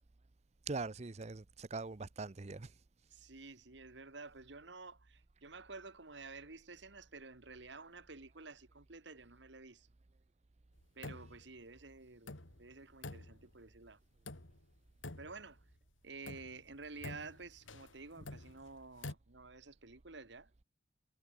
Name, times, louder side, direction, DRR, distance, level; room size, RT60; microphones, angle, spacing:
voice 1, 0.7-2.7, right 3 dB, 35° right, 0.6 m, -42 dB
voice 2, 3.1-9.9 11.0-14.0 15.2-15.6 16.0-20.5, right 3 dB, 65° right, 1.9 m, -51 dB
sound 1, 10.8-11.5 11.8-11.9 12.3-13.7 14.2-14.8 15.0-15.8 16.2-19.1, left 2 dB, 90° left, 2.7 m, -49 dB
head